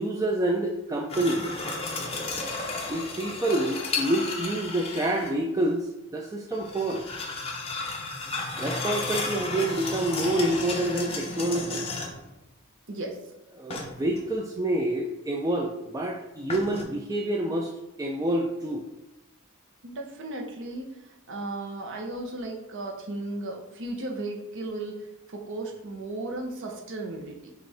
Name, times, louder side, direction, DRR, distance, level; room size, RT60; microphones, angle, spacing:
voice 1, 0.0-1.5 2.9-7.0 8.6-11.9 13.5-17.7 18.0-18.9, right 1 dB, 15° right, 0 dB, 0.3 m, -27 dB
sound 1, 1.1-5.3 6.5-12.3 13.7-14.3 16.5-16.8, left 3 dB, 25° left, 0.8 m, -33 dB
voice 2, 19.8-27.5, right 2 dB, 60° right, 2 dB, 0.8 m, -35 dB
6.2 x 2.5 x 3.4 m, 1.0 s
head